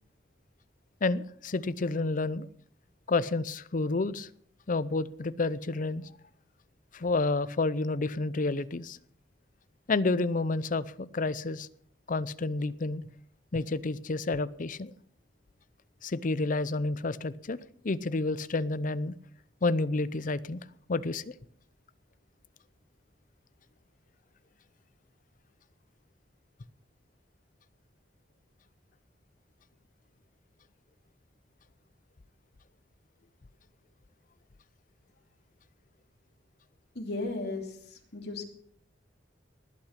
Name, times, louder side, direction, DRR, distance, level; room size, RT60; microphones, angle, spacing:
voice 1, 1.0-2.5 3.1-4.3 4.7-6.1 6.9-9.0 9.9-11.7 12.1-13.1 13.5-14.9 16.0-17.6 17.8-19.1 19.6-20.6 20.9-21.3, left 3 dB, 50° left, 17 dB, 0.6 m, -30 dB
voice 2, 36.9-38.4, left 2 dB, 65° left, 2 dB, 3.0 m, -36 dB
19.5 x 8.9 x 5.8 m, 0.65 s
head